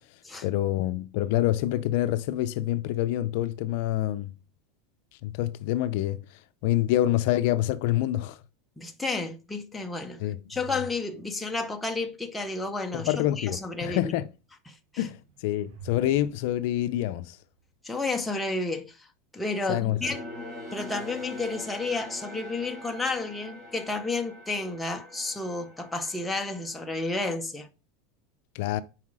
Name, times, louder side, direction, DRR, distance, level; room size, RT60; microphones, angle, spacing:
voice 1, 0.4-4.3 5.2-6.2 6.6-8.4 10.2-10.4 12.9-14.3 15.0-17.4 19.7-20.0 28.5-28.8, left 14 dB, 55° left, 0.5 m, -26 dB
voice 2, 8.8-14.1 14.7-15.1 17.8-19.1 19.3-20.3 20.7-27.7, left 3 dB, 5° left, 0.5 m, -31 dB
sound 1, 14.8-18.3, right 7 dB, 50° right, 0.9 m, -52 dB
sound 2, 20.0-27.2, left 1 dB, 10° right, 1.8 m, -43 dB
5.7 x 4.7 x 4.8 m
supercardioid pair, 170°, 0 cm